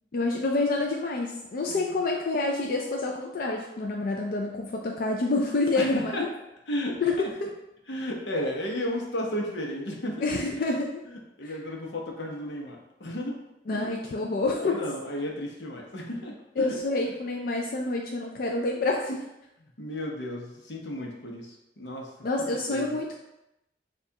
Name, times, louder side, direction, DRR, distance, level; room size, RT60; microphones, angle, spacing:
voice 1, 0.1-6.3 7.0-7.2 10.2-11.0 11.4-11.5 13.7-14.9 16.6-19.2 22.2-23.2, left 2 dB, 55° left, 0 dB, 0.4 m, -28 dB
voice 2, 1.7-2.0 5.7-6.3 6.7-7.0 7.9-10.2 11.4-13.4 13.7-13.9 14.6-16.8 19.8-22.1 22.5-23.0, left 1 dB, 85° left, 0 dB, 0.8 m, -33 dB
6.6 x 2.4 x 2.8 m, 0.91 s
head